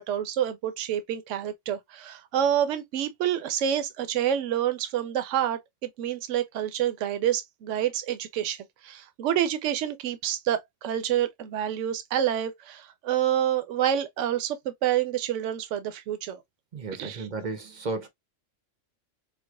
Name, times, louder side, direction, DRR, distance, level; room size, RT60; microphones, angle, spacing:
voice 1, 0.1-16.4 17.0-17.3, right 10 dB, 70° right, 0.9 m, -28 dB
voice 2, 16.7-18.1, right 3 dB, 50° right, 0.6 m, -33 dB
4.5 x 2.1 x 2.3 m
omnidirectional pair, 1.4 m